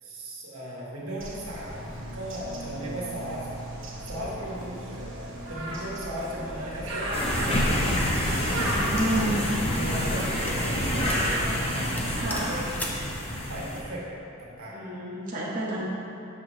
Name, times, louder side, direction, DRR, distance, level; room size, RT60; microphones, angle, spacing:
voice 1, 0.0-3.5 4.1-5.0 5.5-12.7 13.5-14.1 14.4-14.9, equal, 80° right, -5 dB, 1.5 m, -37 dB
Bird, 1.2-12.2, right 1 dB, 60° right, 1.3 m, -36 dB
sound 1, 7.1-13.8, equal, 25° left, 0.8 m, -28 dB
voice 2, 8.6-9.4 12.2-12.5 14.7-15.8, right 1 dB, 40° right, -7 dB, 0.8 m, -30 dB
sound 2, 10.5-10.6 11.1-11.3 11.6-11.7 12.0-13.1, left 1 dB, 5° left, 0.4 m, -39 dB
6.6 x 6.5 x 3.2 m, 2.7 s
head